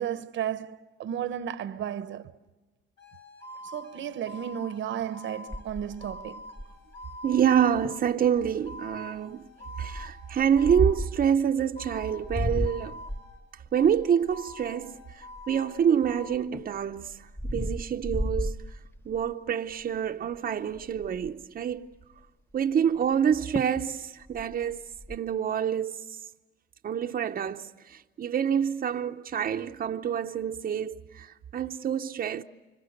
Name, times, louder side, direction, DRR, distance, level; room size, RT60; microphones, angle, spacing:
voice 1, 0.0-2.3 3.7-6.4, right 9 dB, 75° right, 1.1 m, -33 dB
sound 1, 3.0-11.3 11.8-13.5 13.7-16.4, left 2 dB, 65° left, 6.6 m, -46 dB
sound 2, 5.5-7.0 7.5-7.6 7.8-8.1 8.6-8.9 9.8-11.2 11.9-15.8 16.3-19.3 19.8-20.1 20.3-20.4 20.7-21.4 23.1-23.2 23.5-23.9 24.2-25.2, equal, 10° left, 0.9 m, -34 dB
voice 2, 7.2-9.4 9.8-13.0 13.7-15.0 15.5-17.2 17.4-18.6 19.1-21.9 22.5-24.8 25.1-26.0 26.8-32.4, right 8 dB, 45° right, 0.8 m, -27 dB
29.5 x 25.0 x 6.6 m
cardioid pair, 90°, 20 cm